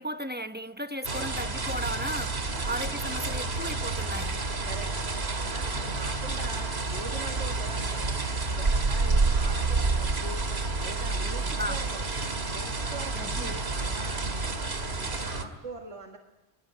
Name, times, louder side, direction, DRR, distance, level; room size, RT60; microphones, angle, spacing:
voice 1, 0.0-2.4 2.6-4.4 11.4-11.8 13.1-13.6, equal, 10° right, 0.8 m, -35 dB
sound 1, 1.0-15.4, right 3 dB, 65° right, 2.4 m, -29 dB
voice 2, 5.5-8.2 8.6-10.4 10.8-12.0 12.5-14.6 15.0-16.2, right 3 dB, 85° right, 2.1 m, -42 dB
23.5 x 22.5 x 9.2 m
omnidirectional pair, 1.2 m